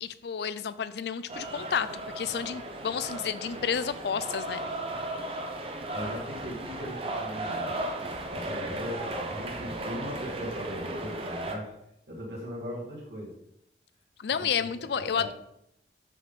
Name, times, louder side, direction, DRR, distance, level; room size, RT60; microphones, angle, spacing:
voice 1, 0.0-4.6 14.2-15.3, left 7 dB, 70° left, 14 dB, 0.4 m, -31 dB
sound 1, 1.3-11.5, right 1 dB, 30° right, 0.7 m, -35 dB
voice 2, 5.9-7.7 8.3-11.7 12.1-13.3 14.6-14.7 15.0-15.3, equal, 85° right, -6 dB, 2.5 m, -39 dB
6.1 x 3.6 x 5.7 m, 0.77 s
head